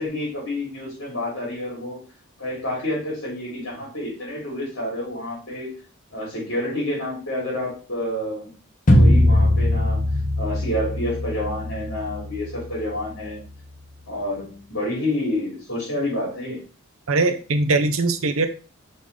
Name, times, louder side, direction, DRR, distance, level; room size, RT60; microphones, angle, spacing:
voice 1, 0.0-2.0 2.4-5.7 6.1-8.5 8.9-10.1 10.4-13.4 14.1-16.6, left 1 dB, 60° left, -4 dB, 3.1 m, -28 dB
sound 1, 8.9-13.9, left 1 dB, 35° left, 1.0 m, -21 dB
voice 2, 17.1-18.5, right 3 dB, 75° right, 8 dB, 0.8 m, -21 dB
5.4 x 4.1 x 4.8 m, 0.35 s
head